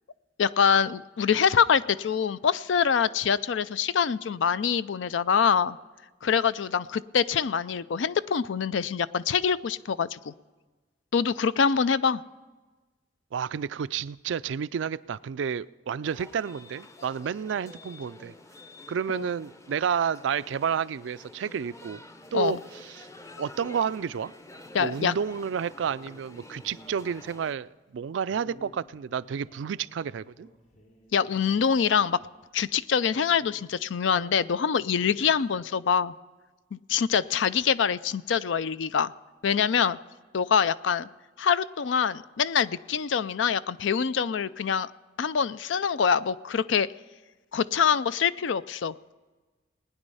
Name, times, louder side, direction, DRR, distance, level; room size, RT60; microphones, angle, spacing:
voice 1, 0.4-5.8 6.2-10.3 11.1-12.2 19.1-19.3 22.3-22.6 24.7-25.1 31.1-32.2 32.5-36.1 36.7-39.1 39.4-40.0 40.3-41.1 41.4-44.9 45.2-46.9 47.5-49.1, left 7 dB, 75° left, 0.4 m, -25 dB
voice 2, 13.3-18.3 18.9-22.0 22.3-22.6 22.9-23.1 23.4-24.3 24.8-30.5, right 7 dB, 75° right, 0.4 m, -30 dB
sound 1, 16.0-27.5, left 2 dB, 15° left, 0.6 m, -49 dB
sound 2, 25.5-27.4 28.3-32.3 32.6-32.7 33.0-34.7 34.9-35.7, equal, 45° left, 4.5 m, -55 dB
20.0 x 9.9 x 5.5 m
head